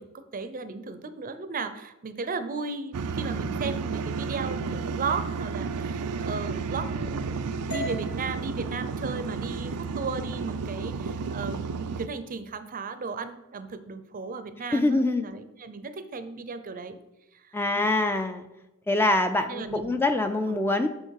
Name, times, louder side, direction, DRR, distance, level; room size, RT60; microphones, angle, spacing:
voice 1, 0.0-11.6 12.0-17.0 17.3-17.9 19.5-20.0 20.5-20.7, right 4 dB, 40° right, 11 dB, 0.5 m, -36 dB
sound 1, 2.9-12.1, right 5 dB, 85° right, 0.5 m, -32 dB
sound 2, 7.7-11.8, right 1 dB, 85° left, 1.9 m, -42 dB
voice 2, 14.7-15.2 17.5-18.5 18.9-20.9, left 2 dB, 10° left, 7 dB, 0.4 m, -24 dB
6.5 x 6.4 x 4.7 m, 0.94 s
head